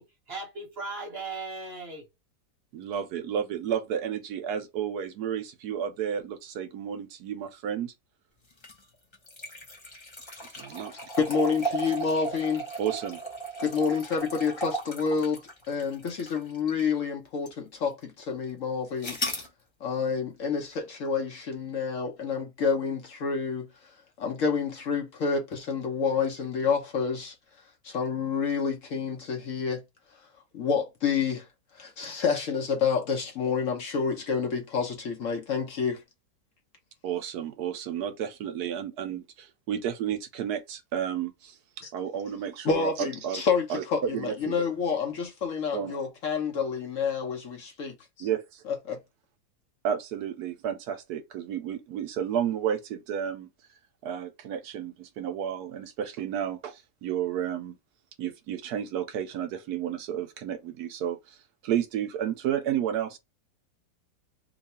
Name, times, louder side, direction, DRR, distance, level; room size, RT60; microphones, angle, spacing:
voice 1, 0.0-2.1, right 3 dB, 45° right, 0.9 m, -38 dB
voice 2, 2.7-7.9 10.4-11.1 12.8-13.2 37.0-43.4 43.7-43.8 44.1-44.5 45.7-46.0 48.2-48.6 49.8-53.5 54.0-57.8 58.2-63.2, right 9 dB, 75° right, 1.0 m, -32 dB
sound 1, 8.5-16.9 17.5-17.6 19.0-19.5, right 3 dB, 25° left, 0.6 m, -36 dB
voice 3, 11.2-12.6 13.6-15.4 15.7-19.2 19.8-23.7 24.2-27.3 27.8-29.8 30.5-31.5 31.7-36.0 41.8-41.9 42.6-48.3 48.7-49.0, left 5 dB, 60° left, 1.0 m, -28 dB
2.9 x 2.3 x 4.1 m
omnidirectional pair, 1.8 m